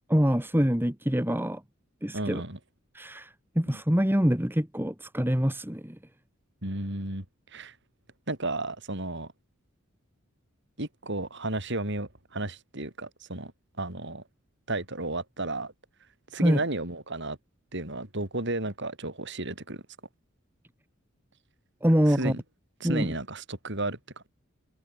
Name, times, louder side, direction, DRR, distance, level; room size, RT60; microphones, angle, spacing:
voice 1, 0.1-1.6 2.0-2.4 2.9-6.0 16.4-16.6 21.8-22.3 22.8-23.1, equal, 10° right, 2.1 m, -25 dB
voice 2, 2.1-2.6 3.7-3.8 6.6-7.2 7.5-7.8 8.3-9.3 10.8-13.5 13.8-14.2 14.7-15.7 16.3-17.4 17.7-19.8 22.2-22.4 22.8-24.0, right 2 dB, 60° right, 5.9 m, -33 dB
head